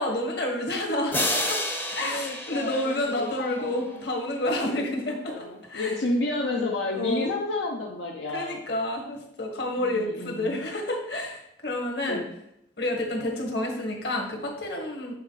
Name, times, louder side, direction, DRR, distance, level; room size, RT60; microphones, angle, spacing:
voice 1, 0.0-1.6 1.9-6.0 6.9-7.3 8.3-12.2 12.8-15.1, left 1 dB, 55° left, 1 dB, 1.5 m, -29 dB
sound 1, 1.1-3.8, left 1 dB, 10° left, 0.6 m, -30 dB
voice 2, 2.0-4.0 5.3-8.7 9.8-10.6 12.1-12.2, left 2 dB, 75° left, 0 dB, 0.7 m, -31 dB
7.5 x 4.0 x 4.0 m, 0.76 s
head